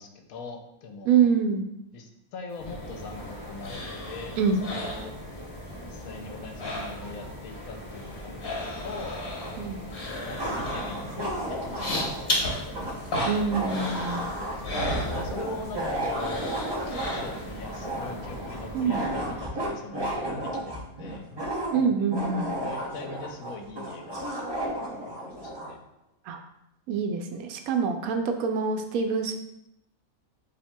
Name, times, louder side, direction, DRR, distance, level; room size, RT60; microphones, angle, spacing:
voice 1, 0.0-1.3 1.9-4.4 4.6-5.1 5.8-9.2 10.2-13.3 14.1-16.5 17.0-21.3 21.8-22.1 22.6-24.8 25.0-25.8, left 3 dB, 75° left, 4 dB, 1.0 m, -42 dB
voice 2, 1.1-1.7 4.4-4.6 9.6-9.9 13.2-14.2 18.7-19.0 21.7-22.5 26.3-26.4 26.9-29.3, right 6 dB, 80° right, 5 dB, 1.0 m, -25 dB
sound 1, 2.6-19.4, equal, 15° left, 1.1 m, -41 dB
sound 2, 2.7-5.7 6.0-7.3 7.6-15.8 16.1-17.6 18.0-18.1, left 1 dB, 45° left, 1.0 m, -35 dB
sound 3, 9.4-9.5 10.4-25.8, right 1 dB, 40° right, 0.3 m, -33 dB
7.1 x 2.7 x 2.2 m, 0.82 s
omnidirectional pair, 1.5 m